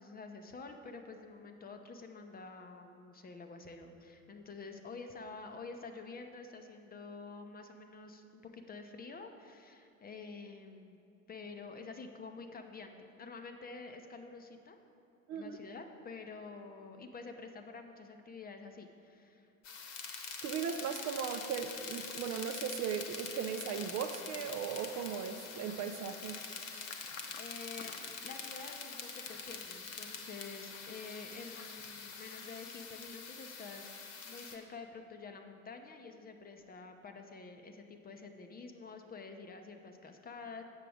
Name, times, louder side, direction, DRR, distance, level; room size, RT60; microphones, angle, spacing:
voice 1, 0.0-11.0 11.3-14.8 15.3-19.5 27.4-27.9 28.2-40.6, left 4 dB, 20° left, 5 dB, 0.6 m, -48 dB
sound 1, 19.6-34.6, left 5 dB, 40° left, 1.1 m, -45 dB
voice 2, 20.4-26.4, right 7 dB, 40° right, 6 dB, 0.5 m, -37 dB
sound 2, 22.9-32.9, left 5 dB, 60° left, 0.9 m, -57 dB
8.0 x 6.7 x 4.9 m, 2.6 s
figure-of-eight pair, 65°, 42 cm